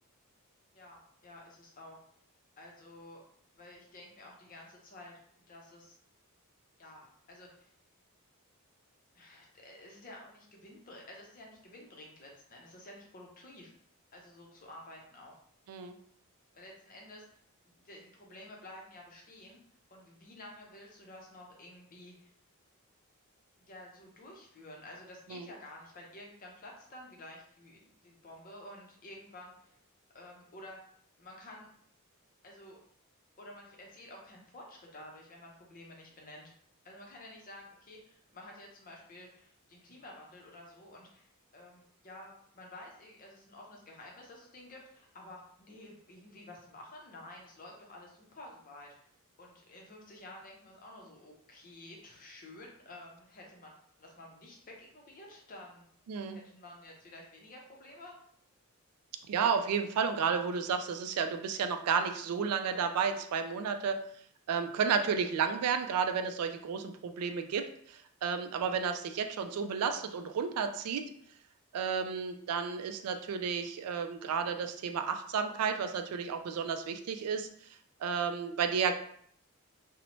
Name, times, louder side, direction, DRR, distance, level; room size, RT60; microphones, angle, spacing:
voice 1, 0.7-2.0 2.6-3.2 3.5-5.2 5.5-5.9 6.8-7.7 9.1-13.7 14.1-15.3 16.5-17.2 17.7-19.6 19.9-22.3 23.7-29.8 30.1-30.8 31.2-31.7 32.4-32.8 33.4-36.5 36.8-48.9 49.4-53.7 54.0-55.8 56.3-58.2, left 1 dB, 40° left, -1 dB, 0.6 m, -51 dB
voice 2, 56.1-56.4 59.3-64.0 64.5-71.0 71.7-77.5 78.0-78.9, right 6 dB, 85° right, 7 dB, 0.3 m, -32 dB
2.6 x 2.0 x 2.9 m, 0.64 s
head